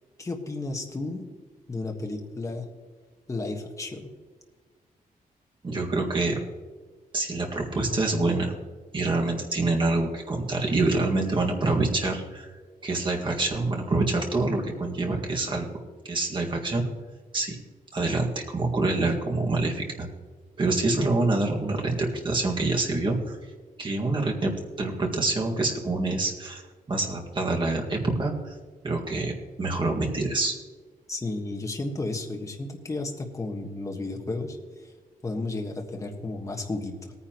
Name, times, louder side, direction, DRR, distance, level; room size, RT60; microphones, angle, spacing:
voice 1, 0.2-1.3 1.7-2.7 3.3-4.1 31.1-34.6 35.2-37.1, left 2 dB, 20° left, 1 dB, 1.4 m, -33 dB
voice 2, 5.6-6.4 7.1-8.5 8.9-12.5 12.8-15.7 16.1-16.8 17.3-17.6 17.9-20.1 20.6-23.4 23.8-26.6 26.9-28.5 28.8-30.5, right 2 dB, 35° right, 1 dB, 1.8 m, -26 dB
18.5 x 9.8 x 3.0 m, 1.4 s
wide cardioid pair, 150°, 15 cm